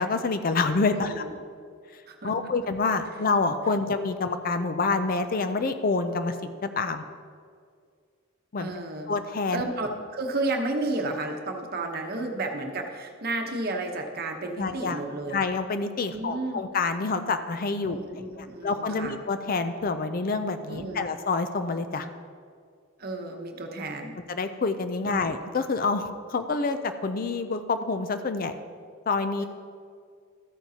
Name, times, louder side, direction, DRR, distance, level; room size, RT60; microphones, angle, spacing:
voice 1, 0.0-1.3 2.2-7.0 8.5-8.7 9.1-9.6 14.6-15.0 15.3-18.0 18.4-22.1 24.3-28.5 29.1-29.4, left 4 dB, 45° left, 9 dB, 0.5 m, -27 dB
voice 2, 0.9-1.3 2.1-2.3 8.6-9.1 9.5-15.4 16.1-16.6 17.8-19.1 20.7-21.1 23.0-24.2 25.0-25.3, right 2 dB, 50° right, 3 dB, 1.0 m, -32 dB
13.5 x 8.9 x 2.8 m, 2.1 s
head